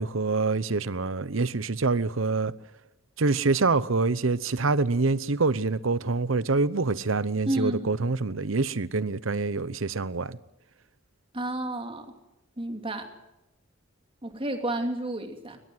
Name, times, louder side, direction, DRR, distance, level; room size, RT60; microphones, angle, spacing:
voice 1, 0.0-2.5 3.2-10.4, right 3 dB, 85° right, 0.9 m, -26 dB
voice 2, 7.5-7.9 11.3-12.1 12.6-13.1 14.2-15.6, right 1 dB, 25° right, 2.8 m, -31 dB
22.0 x 21.0 x 7.9 m
head